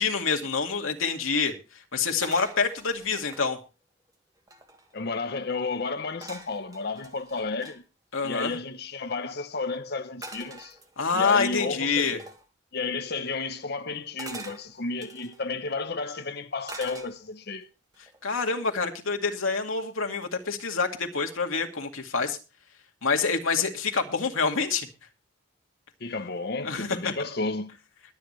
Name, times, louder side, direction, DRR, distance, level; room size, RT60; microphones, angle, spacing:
voice 1, 0.0-1.5 1.9-3.6 8.1-8.5 11.0-12.2 18.2-22.4 23.0-24.9 26.6-27.1, left 5 dB, 90° left, 2.2 m, -27 dB
sound 1, 2.2-3.5 4.1-4.2 4.4-5.0 6.2-7.8 10.2-11.3 12.2-12.5 14.2-15.4 16.7-17.5 17.9-18.3, right 2 dB, 20° right, 1.9 m, -44 dB
voice 2, 4.9-7.8 8.2-10.8 11.1-12.2 12.7-17.7 26.0-27.8, left 3 dB, 50° left, 0.9 m, -32 dB
22.0 x 8.3 x 3.2 m
head